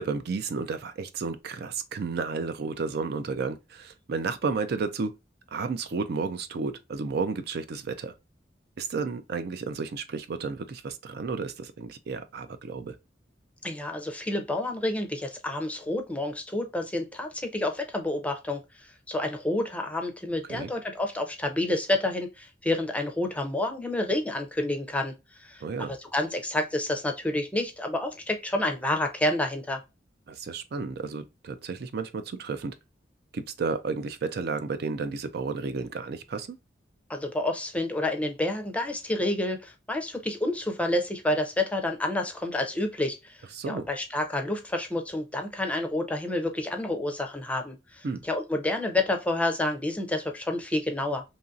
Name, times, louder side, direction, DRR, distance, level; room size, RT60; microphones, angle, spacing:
voice 1, 0.0-5.1 5.5-8.1 8.8-13.0 20.5-20.7 25.6-25.9 30.3-32.7 33.3-36.6 43.6-43.9 48.0-48.2, right 4 dB, 60° right, 0.4 m, -32 dB
voice 2, 13.6-25.1 25.4-29.8 37.1-43.4 43.7-51.2, left 1 dB, 10° left, 0.5 m, -29 dB
2.9 x 2.6 x 2.3 m
head